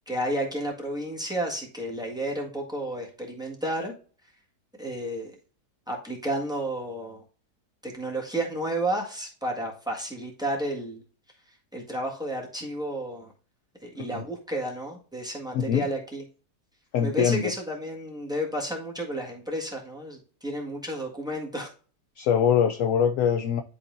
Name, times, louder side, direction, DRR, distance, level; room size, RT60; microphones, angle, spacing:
voice 1, 0.1-3.9 4.8-5.3 5.9-7.2 7.8-11.0 11.7-13.3 13.8-16.2 17.0-21.7, right 1 dB, 5° right, 1.6 m, -32 dB
voice 2, 15.5-15.9 16.9-17.5 22.2-23.6, left 8 dB, 70° left, 0.8 m, -23 dB
11.0 x 4.1 x 2.6 m
omnidirectional pair, 1.7 m